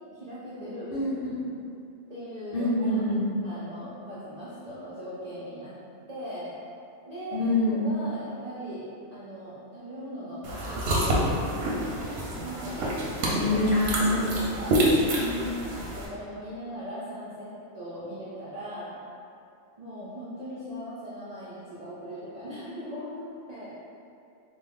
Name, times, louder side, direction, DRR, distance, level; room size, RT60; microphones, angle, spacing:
voice 1, 0.1-1.3 2.1-3.0 3.4-5.7 6.1-6.5 7.1-12.0 12.4-12.9 13.3-13.7 14.0-14.8 15.7-19.0 19.8-23.8, equal, 80° right, -9 dB, 0.3 m, -39 dB
voice 2, 0.9-1.6 2.5-3.4 7.3-7.9 13.3-14.4 14.7-15.4, left 1 dB, 50° left, -8 dB, 0.7 m, -26 dB
sound 1, 10.4-16.1, right 1 dB, 60° right, 0.7 m, -27 dB
3.3 x 2.1 x 3.5 m, 2.5 s
omnidirectional pair, 1.4 m